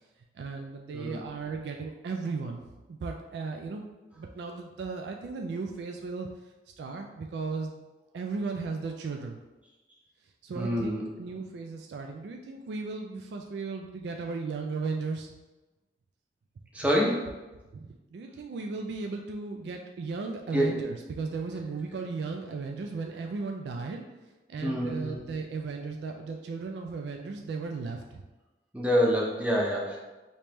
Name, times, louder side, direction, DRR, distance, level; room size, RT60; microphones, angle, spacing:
voice 1, 0.3-2.6 2.9-3.9 4.1-6.3 6.8-7.8 8.1-9.4 10.4-15.3 17.7-24.0 24.5-28.2, right 4 dB, 75° right, 2 dB, 0.3 m, -36 dB
voice 2, 10.5-11.0 16.7-17.3 20.5-20.7 24.6-25.2 28.7-30.0, equal, 5° right, -3 dB, 0.5 m, -26 dB
3.0 x 2.8 x 3.4 m, 1.1 s
head